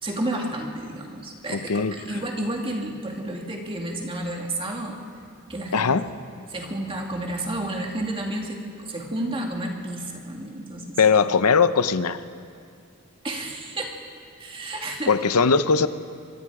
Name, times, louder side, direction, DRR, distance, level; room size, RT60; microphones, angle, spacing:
voice 1, 0.0-5.0 5.5-5.9 6.5-11.0 13.2-13.9 14.4-15.1, right 1 dB, 25° right, 1 dB, 2.3 m, -31 dB
voice 2, 1.5-1.9 5.7-6.0 11.0-12.2 15.1-15.9, left 5 dB, 90° left, 13 dB, 0.7 m, -20 dB
25.0 x 22.5 x 4.9 m, 2.3 s
head